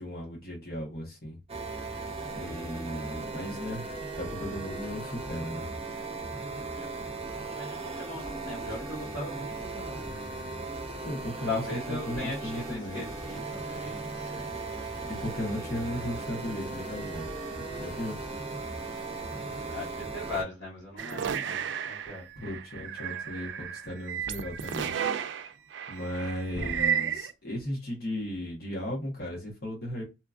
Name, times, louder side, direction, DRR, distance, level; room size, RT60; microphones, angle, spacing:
voice 1, 0.0-1.4 2.3-3.9 4.2-5.7 11.0-13.0 15.0-17.3 17.6-18.2 22.4-24.9 25.9-30.0, equal, 55° left, 1.1 m, -36 dB
sound 1, 1.5-20.4, right 3 dB, 35° right, 0.6 m, -37 dB
voice 2, 6.3-10.3 11.4-14.5 19.3-22.3 26.5-26.8, left 2 dB, 75° left, 1.6 m, -39 dB
sound 2, 12.5-19.9, right 1 dB, 25° left, 1.0 m, -50 dB
sound 3, 21.0-27.3, right 8 dB, 75° right, 0.4 m, -33 dB
2.8 x 2.4 x 2.4 m
head